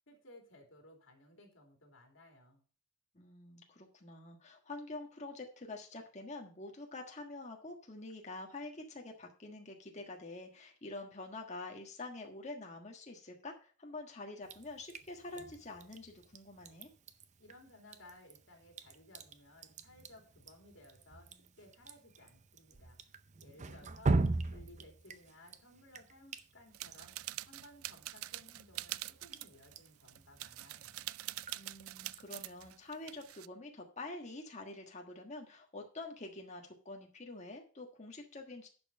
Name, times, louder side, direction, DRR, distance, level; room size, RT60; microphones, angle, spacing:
voice 1, 0.0-2.6 17.4-23.2 23.4-31.1, left 1 dB, 65° left, 2 dB, 3.1 m, -59 dB
voice 2, 3.1-16.9 23.6-24.0 24.3-24.4 31.5-38.7, left 2 dB, 35° left, 2 dB, 1.5 m, -47 dB
Drip, 14.4-32.7, right 3 dB, 35° right, 0.6 m, -42 dB
sound 1, 26.7-33.5, right 16 dB, 90° right, 0.3 m, -45 dB
10.5 x 5.5 x 5.4 m, 0.39 s
head